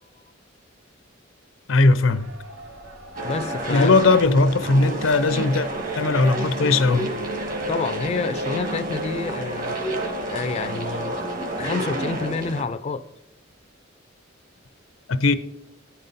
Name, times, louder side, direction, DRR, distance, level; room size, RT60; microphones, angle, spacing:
voice 1, 1.7-2.3 3.7-5.7 6.0-7.1 15.1-15.4, left 3 dB, 85° left, 0.6 m, -18 dB
sound 1, 2.1-11.7, equal, 85° right, 1.5 m, -46 dB
voice 2, 3.2-3.9 7.7-9.8 10.3-11.1 11.6-13.0, left 4 dB, 35° left, 0.3 m, -28 dB
sound 2, 3.2-12.6, right 1 dB, 45° right, 1.6 m, -29 dB
14.0 x 5.4 x 4.0 m
head